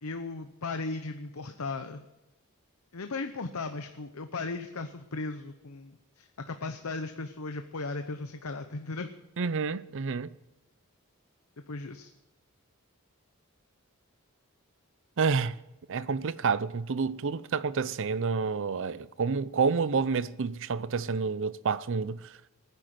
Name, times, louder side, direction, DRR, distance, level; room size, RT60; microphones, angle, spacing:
voice 1, 0.0-2.1 2.9-9.1 11.7-12.1, left 3 dB, 75° left, 0.8 m, -36 dB
voice 2, 9.4-10.3 15.2-15.6 15.9-22.5, right 5 dB, 60° right, 0.6 m, -29 dB
17.5 x 9.9 x 7.7 m
head